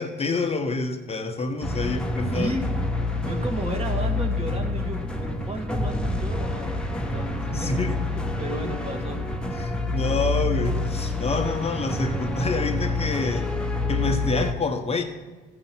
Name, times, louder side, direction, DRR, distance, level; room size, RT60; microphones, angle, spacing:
voice 1, 0.0-2.5 7.5-7.9 9.6-13.5 13.9-15.0, left 3 dB, 30° left, 4 dB, 1.0 m, -27 dB
sound 1, 1.6-14.5, left 2 dB, 5° left, 1.1 m, -27 dB
voice 2, 1.8-2.7 3.0-9.4, right 2 dB, 30° right, 3 dB, 2.1 m, -34 dB
14.5 x 5.5 x 6.0 m, 1.3 s
cardioid pair, 90°, 20 cm